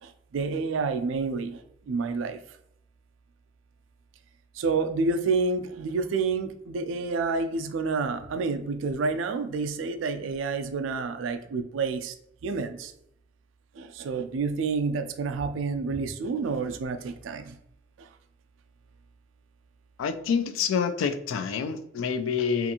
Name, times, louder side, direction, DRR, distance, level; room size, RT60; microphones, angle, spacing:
voice 1, 0.0-2.4 4.5-12.1 12.4-12.9 13.8-17.6 18.0-18.1, right 4 dB, 85° right, 9 dB, 0.3 m, -29 dB
voice 2, 20.0-22.7, left 6 dB, 85° left, 11 dB, 0.3 m, -27 dB
2.5 x 2.5 x 2.7 m, 0.76 s
head